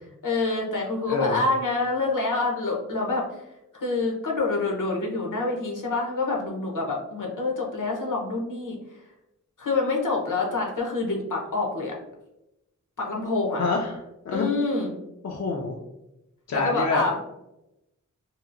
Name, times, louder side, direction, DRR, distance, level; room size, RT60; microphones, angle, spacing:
voice 1, 0.2-3.4 3.7-8.8 9.6-11.9 13.0-13.6 14.3-14.9 16.5-17.2, left 3 dB, 75° left, -1 dB, 0.8 m, -27 dB
voice 2, 1.1-1.4 13.6-13.9 14.3-14.5 15.2-15.8 16.5-17.0, left 4 dB, 55° left, 0 dB, 0.4 m, -26 dB
2.8 x 2.4 x 2.5 m, 0.90 s
cardioid pair, 45°, 32 cm